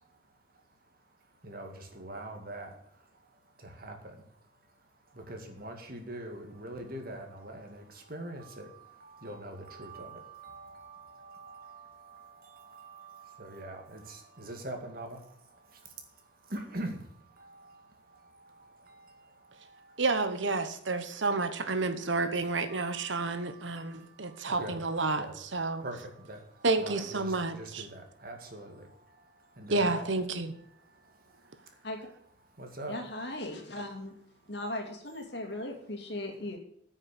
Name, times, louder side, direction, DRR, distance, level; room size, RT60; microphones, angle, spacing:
voice 1, 1.4-2.7 3.8-4.0 5.3-7.8 8.1-8.7 9.0-12.3 12.7-15.2 16.5-17.0 22.7-22.8 24.5-24.8 25.2-25.4 25.8-26.0 26.3-26.4 26.8-28.7 29.6-30.1 32.6-33.0, right 1 dB, 50° right, 4 dB, 2.1 m, -42 dB
voice 2, 20.0-25.8 26.6-27.9 29.7-30.5, right 3 dB, 75° right, 9 dB, 1.2 m, -30 dB
voice 3, 32.9-34.1 34.5-36.6, left 1 dB, 60° left, 3 dB, 2.4 m, -38 dB
9.5 x 6.5 x 8.2 m, 0.68 s
head